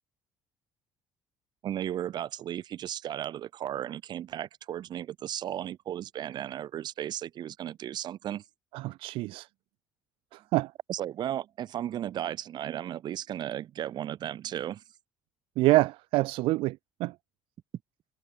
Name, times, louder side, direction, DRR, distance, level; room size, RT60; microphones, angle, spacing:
voice 1, 1.6-8.4 10.9-14.8, right 11 dB, 55° right, 1.6 m, -35 dB
voice 2, 8.7-9.5 10.3-10.7 15.6-17.1, right 19 dB, 75° right, 0.6 m, -26 dB
cardioid pair, 115°, 9 cm